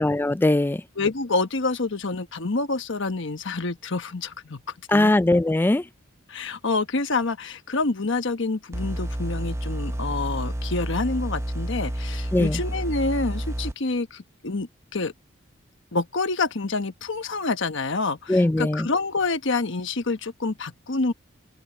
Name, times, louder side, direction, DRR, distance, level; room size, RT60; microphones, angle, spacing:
voice 1, 0.0-0.8 4.9-5.9 12.3-12.6 18.3-18.9, left 2 dB, 10° left, 0.3 m, -20 dB
voice 2, 1.0-4.6 4.9-5.1 6.3-15.1 15.9-21.1, left 3 dB, 65° left, 1.3 m, -27 dB
sound 1, 8.7-13.7, right 1 dB, 15° right, 0.7 m, -30 dB
open air
head